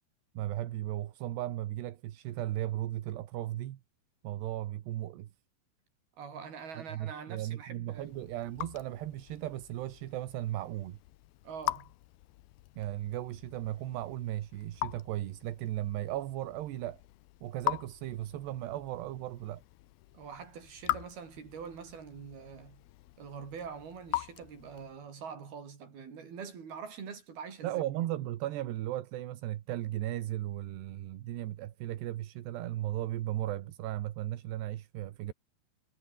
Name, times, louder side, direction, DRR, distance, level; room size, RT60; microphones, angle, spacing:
voice 1, 0.3-3.8 4.2-5.3 6.7-11.0 12.8-17.0 17.4-19.6 27.6-35.3, right 14 dB, 75° right, 3.4 m, -36 dB
voice 2, 6.2-8.2 11.4-11.9 20.1-22.8 23.2-27.8, right 6 dB, 60° right, 6.4 m, -44 dB
Raindrop / Drip, 7.9-25.0, left 17 dB, 75° left, 2.3 m, -42 dB
omnidirectional pair, 5.2 m